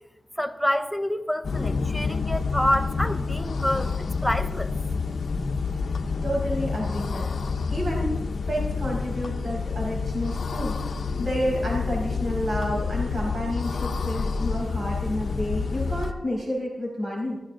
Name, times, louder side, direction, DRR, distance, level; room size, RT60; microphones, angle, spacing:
voice 1, 0.4-4.7, equal, ahead, 9 dB, 0.8 m, -27 dB
sound 1, 1.4-16.1, left 4 dB, 75° left, 0.7 m, -28 dB
voice 2, 6.2-7.3 7.7-17.4, equal, 55° right, -3 dB, 5.2 m, -30 dB
15.0 x 13.5 x 3.8 m, 1.0 s
wide cardioid pair, 125°, 0 cm